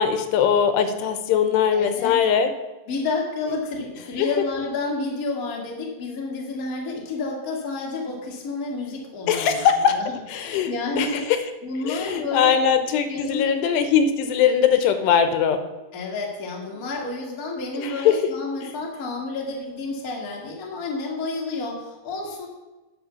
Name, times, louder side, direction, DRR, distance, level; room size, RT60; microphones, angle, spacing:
voice 1, 0.0-2.5 4.2-4.3 9.3-10.0 10.3-11.4 11.8-15.6 17.8-18.2 18.6-18.7, left 8 dB, 85° left, 9 dB, 3.0 m, -21 dB
voice 2, 1.7-2.2 2.9-10.0 10.3-11.2 11.6-12.6 13.1-13.8 15.9-22.5, left 3 dB, 35° left, -1 dB, 1.3 m, -30 dB
9.8 x 6.0 x 6.9 m, 1.1 s
omnidirectional pair, 4.7 m